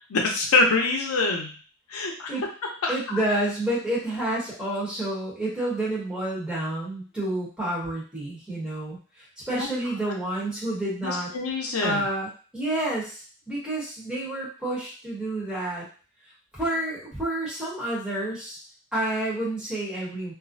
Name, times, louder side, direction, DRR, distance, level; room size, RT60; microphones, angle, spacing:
voice 1, 0.1-1.5 1.9-2.4 2.8-2.9 9.5-9.7 11.0-12.0, left 3 dB, 85° left, 2 dB, 0.5 m, -24 dB
voice 2, 2.9-11.3 11.8-15.9 16.5-18.6 18.9-20.3, right 1 dB, 5° right, -8 dB, 0.9 m, -29 dB
2.4 x 2.0 x 2.5 m, 0.38 s
head